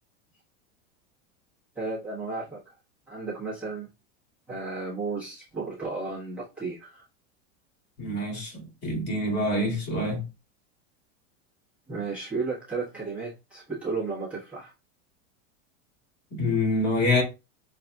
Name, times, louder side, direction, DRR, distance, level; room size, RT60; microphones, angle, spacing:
voice 1, 1.7-2.7 3.1-3.9 4.5-7.0 11.9-14.7, right 4 dB, 5° right, 1.2 m, -33 dB
voice 2, 8.0-10.2 16.3-17.2, left 2 dB, 25° left, 2.0 m, -26 dB
6.6 x 2.6 x 2.3 m
supercardioid pair, 145°, 38 cm